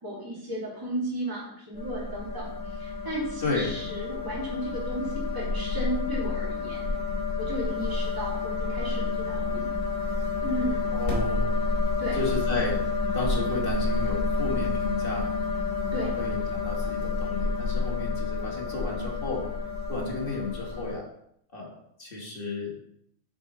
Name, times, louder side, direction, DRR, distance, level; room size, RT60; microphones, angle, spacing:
voice 1, 0.0-6.9 7.4-9.7 10.4-11.0 12.0-12.2 15.9-16.2, right 1 dB, 15° right, -6 dB, 2.2 m, -34 dB
sound 1, 1.7-20.9, left 3 dB, 55° left, 3.3 m, -29 dB
voice 2, 10.9-11.6 12.1-12.8 13.1-15.3 15.9-19.4 19.9-21.1 21.5-22.7, left 3 dB, 35° left, -2 dB, 1.9 m, -33 dB
8.1 x 4.5 x 4.2 m, 0.71 s
omnidirectional pair, 1.6 m